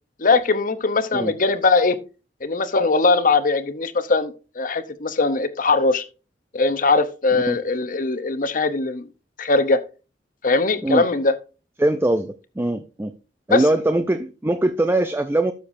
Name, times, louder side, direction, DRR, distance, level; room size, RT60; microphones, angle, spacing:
voice 1, 0.2-2.0 2.4-6.1 6.5-9.1 9.4-9.8 10.4-11.3 13.5-13.6, left 3 dB, 50° left, 11 dB, 0.8 m, -20 dB
voice 2, 11.8-12.3 12.6-13.1 13.5-15.5, right 1 dB, 15° right, 9 dB, 0.4 m, -21 dB
12.0 x 6.7 x 2.6 m, 0.33 s
head